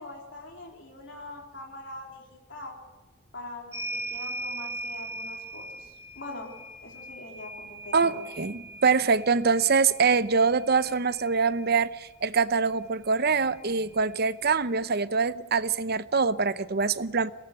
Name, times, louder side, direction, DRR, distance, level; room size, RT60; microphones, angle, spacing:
voice 1, 0.0-2.8 3.3-6.5 6.8-8.3, left 2 dB, 60° left, 0 dB, 3.8 m, -43 dB
sound 1, 3.7-11.8 13.1-13.2 13.5-14.6, right 2 dB, 15° right, 4.1 m, -40 dB
voice 2, 7.9-17.3, right 5 dB, 50° right, 14 dB, 0.8 m, -24 dB
22.5 x 18.0 x 8.0 m, 1.2 s
head